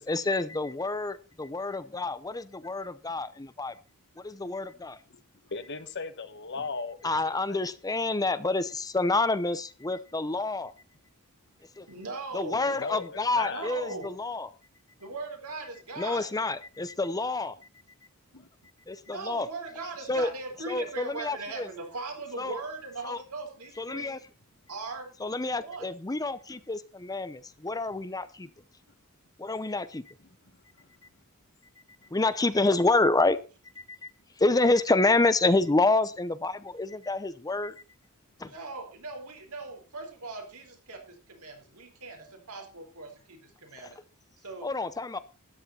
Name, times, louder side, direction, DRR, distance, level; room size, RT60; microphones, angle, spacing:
voice 1, 0.0-3.8 4.2-5.0 7.0-10.7 11.8-11.9 12.3-14.5 16.0-17.6 18.9-19.5 20.1-20.3 20.7-21.7 22.4-22.6 23.0-23.2 23.8-24.2 25.2-28.5 29.4-30.1 32.1-33.4 33.8-34.1 34.4-37.7 38.4-38.5 43.8-43.9 44.6-45.2, left 2 dB, 15° left, 0.7 m, -28 dB
voice 2, 5.5-7.6 12.7-13.7 18.3-18.5 28.4-28.5 30.5-30.6, left 4 dB, 55° left, 1.3 m, -37 dB
voice 3, 11.9-12.6 13.5-14.2 15.0-16.3 19.0-24.2 24.7-25.1 25.6-25.9 38.4-44.0 44.4-44.7, right 3 dB, 80° right, 4.3 m, -39 dB
13.0 x 10.5 x 4.3 m
head